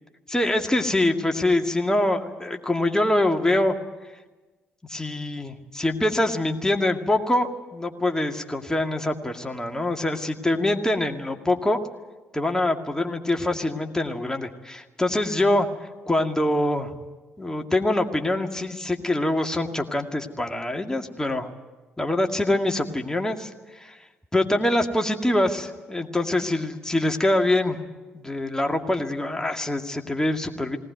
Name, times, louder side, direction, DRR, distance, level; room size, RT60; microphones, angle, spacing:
voice 1, 0.3-3.8 4.9-11.8 12.3-15.7 16.1-16.9 17.4-21.5 22.0-23.5 23.8-24.0 24.3-27.8 28.1-30.8, left 1 dB, 10° left, 4 dB, 2.2 m, -24 dB
19.0 x 19.0 x 9.4 m, 1.2 s
figure-of-eight pair, 45°, 6 cm